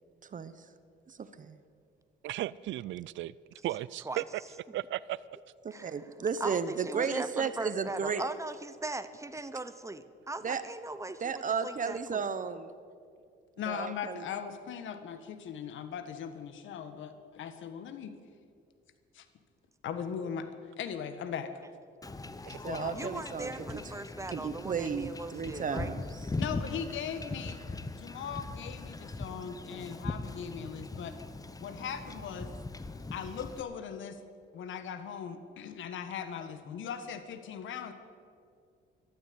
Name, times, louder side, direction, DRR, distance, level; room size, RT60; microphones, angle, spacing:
voice 1, 1.1-1.6 5.6-8.2 10.4-10.6 11.2-12.7 13.7-14.2 22.6-23.8 24.3-26.2, right 6 dB, 40° right, 13 dB, 1.0 m, -34 dB
voice 2, 2.2-3.3 3.6-4.4 4.7-5.2 22.4-22.6, right 14 dB, 70° right, 19 dB, 0.4 m, -35 dB
voice 3, 5.7-6.0 6.4-12.3 22.9-25.9, right 2 dB, 15° right, 12 dB, 0.9 m, -39 dB
voice 4, 13.6-18.1 19.1-19.3 19.8-20.5 20.8-21.5 22.6-23.1 26.4-27.6 28.0-31.2 31.6-32.5 33.1-34.2 34.5-37.9, left 7 dB, 75° left, 10 dB, 1.4 m, -39 dB
Wind / Ocean / Boat Water vehicle, 22.0-33.6, left 3 dB, 20° left, 0.9 m, -40 dB
13.5 x 12.5 x 8.6 m, 2.2 s
cardioid pair, 90°, 20 cm